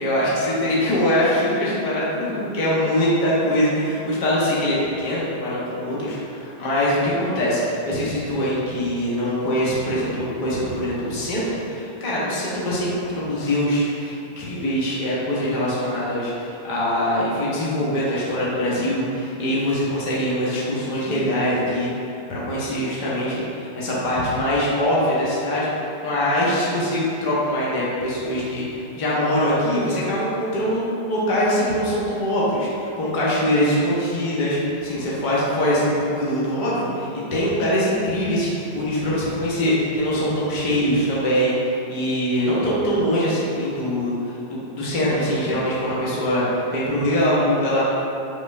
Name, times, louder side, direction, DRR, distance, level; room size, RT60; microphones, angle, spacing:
voice 1, 0.0-41.5 41.9-47.8, equal, 45° left, -7 dB, 1.0 m, -23 dB
4.8 x 2.2 x 2.7 m, 2.8 s
figure-of-eight pair, 90°, 0 cm